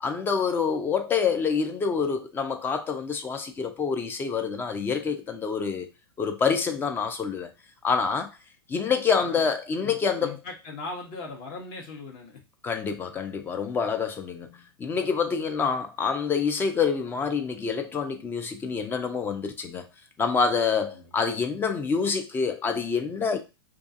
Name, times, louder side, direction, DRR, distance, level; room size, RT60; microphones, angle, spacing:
voice 1, 0.0-5.9 6.2-7.5 7.8-8.3 8.7-10.4 12.6-19.9 20.2-23.4, left 5 dB, 15° left, 0.4 m, -27 dB
voice 2, 9.8-12.4 20.7-21.1, left 3 dB, 40° left, 0.8 m, -39 dB
2.4 x 2.3 x 2.6 m
figure-of-eight pair, 100°, 13 cm